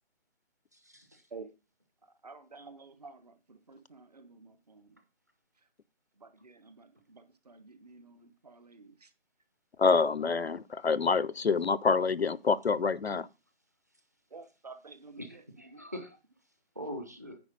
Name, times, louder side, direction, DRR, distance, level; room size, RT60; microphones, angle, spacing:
voice 1, 0.7-1.2 11.4-11.8 15.2-16.2 16.7-17.4, equal, 15° right, 0.7 m, -43 dB
voice 2, 2.2-5.0 6.2-9.1 14.3-15.4 15.7-15.8, right 4 dB, 40° right, 1.0 m, -51 dB
voice 3, 9.8-13.3, left 5 dB, 75° left, 0.6 m, -27 dB
9.7 x 4.8 x 5.0 m
figure-of-eight pair, 150°, 32 cm